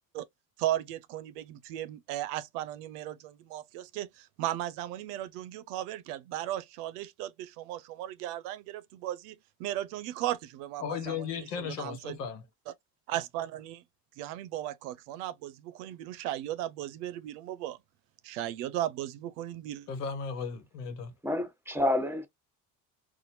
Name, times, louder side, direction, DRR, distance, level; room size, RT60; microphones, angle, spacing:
voice 1, 0.6-11.2 11.6-12.2 13.1-13.8 14.2-17.8 18.2-19.9, right 13 dB, 75° right, 0.7 m, -36 dB
voice 2, 10.8-12.5 19.9-21.1, left 6 dB, 90° left, 1.2 m, -36 dB
voice 3, 21.2-22.3, left 1 dB, 5° right, 1.1 m, -28 dB
4.2 x 2.5 x 2.7 m
hypercardioid pair, 65°, 46 cm